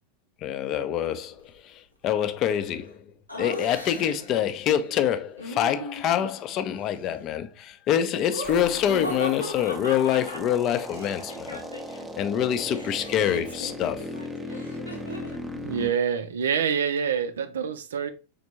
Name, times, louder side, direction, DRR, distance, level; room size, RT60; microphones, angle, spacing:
voice 1, 0.4-3.0 3.4-11.6 12.2-14.1, left 10 dB, 35° left, 0.5 m, -26 dB
Laughter, 3.3-4.3 5.4-6.4 8.2-12.1 12.3-15.4, equal, 90° left, 0.9 m, -37 dB
sound 1, 8.4-15.9, left 1 dB, 10° right, 0.7 m, -38 dB
voice 2, 15.5-18.1, right 7 dB, 65° right, 0.5 m, -26 dB
5.1 x 3.4 x 2.9 m
figure-of-eight pair, 90°, 0 cm